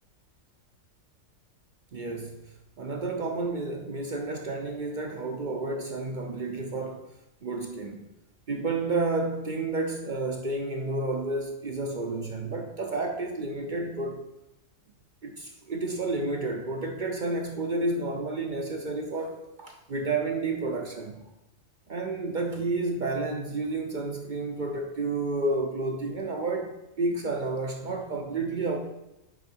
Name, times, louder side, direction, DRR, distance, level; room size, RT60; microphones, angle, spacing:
voice 1, 1.9-2.5 2.8-7.1 7.4-8.0 8.5-14.2 15.2-21.2 21.9-28.8, right 2 dB, 50° right, 3 dB, 0.6 m, -31 dB
6.6 x 5.0 x 4.4 m, 0.91 s
omnidirectional pair, 1.4 m